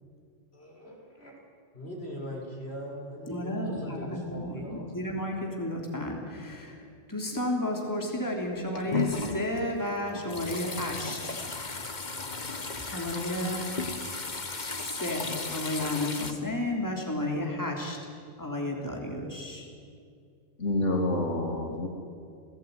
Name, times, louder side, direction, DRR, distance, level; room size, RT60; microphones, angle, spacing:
voice 1, 0.5-1.3 1.7-4.9, equal, 60° left, -1 dB, 6.5 m, -40 dB
voice 2, 3.3-11.3 12.7-13.6 14.7-18.0 18.4-19.7, left 1 dB, 15° left, 0 dB, 3.3 m, -32 dB
sound 1, 8.5-16.3, left 3 dB, 40° left, 1.6 m, -35 dB
voice 3, 20.6-21.9, left 2 dB, 85° left, 1 dB, 2.7 m, -28 dB
29.0 x 17.5 x 9.4 m, 2.3 s
omnidirectional pair, 1.2 m